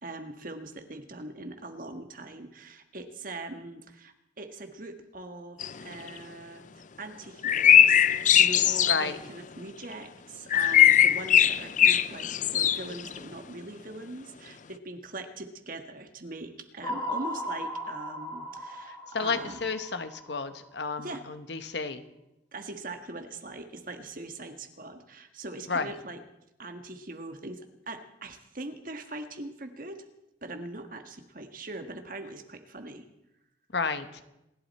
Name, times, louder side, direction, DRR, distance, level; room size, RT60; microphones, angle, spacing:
voice 1, 0.0-19.6 21.0-21.2 22.5-26.2 26.6-30.0 30.4-33.1, right 2 dB, 50° right, 6 dB, 1.5 m, -41 dB
sound 1, 5.6-5.7 6.1-6.2 7.4-9.1 10.5-13.2, left 10 dB, 45° left, 0.5 m, -20 dB
voice 2, 8.9-9.2 18.9-22.0 25.7-25.9 33.7-34.2, left 4 dB, 65° left, 10 dB, 1.1 m, -32 dB
sound 2, 16.8-21.1, equal, 20° left, 1.9 m, -37 dB
27.5 x 11.5 x 4.3 m, 0.90 s
head